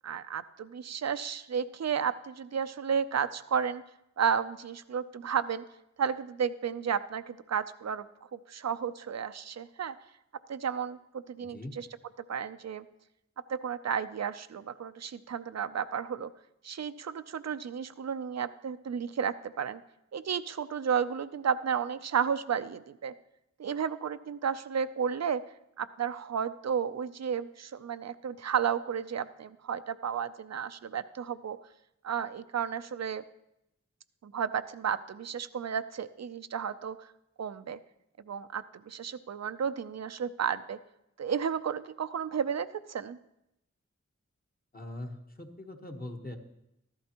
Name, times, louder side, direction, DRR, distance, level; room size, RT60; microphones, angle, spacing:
voice 1, 0.0-3.8 4.2-5.6 6.0-8.1 8.3-9.9 10.5-11.9 12.3-12.8 13.5-16.3 16.6-19.8 20.1-23.1 23.6-25.4 25.8-31.6 32.0-33.2 34.2-37.1 37.4-37.8 38.3-40.8 41.2-43.2, right 7 dB, 60° right, 13 dB, 0.5 m, -32 dB
voice 2, 11.4-11.8 44.7-46.4, left 1 dB, 30° left, 2 dB, 1.2 m, -41 dB
13.5 x 12.0 x 2.9 m, 0.85 s
wide cardioid pair, 85°, 29 cm